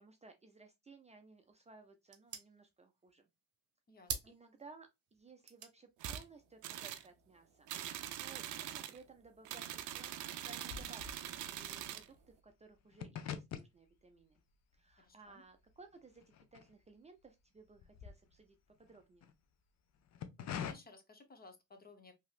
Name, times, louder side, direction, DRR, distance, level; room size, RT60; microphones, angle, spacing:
voice 1, 0.0-3.3 4.3-12.1 12.4-14.4 14.7-16.2 16.5-19.3, right 4 dB, 20° right, 0.4 m, -59 dB
sound 1, 1.1-7.9, right 6 dB, 55° right, 0.8 m, -50 dB
voice 2, 3.9-4.3 15.0-15.4 20.4-22.1, left 3 dB, 30° left, 0.8 m, -58 dB
sound 2, 6.0-6.2 6.6-7.1 7.7-9.0 9.4-12.1, right 11 dB, 85° right, 0.5 m, -43 dB
sound 3, 7.9-8.7 8.9-17.2 17.6-19.3 19.9-20.7, left 8 dB, 60° left, 0.6 m, -47 dB
3.1 x 2.8 x 2.4 m
cardioid pair, 90°, 30 cm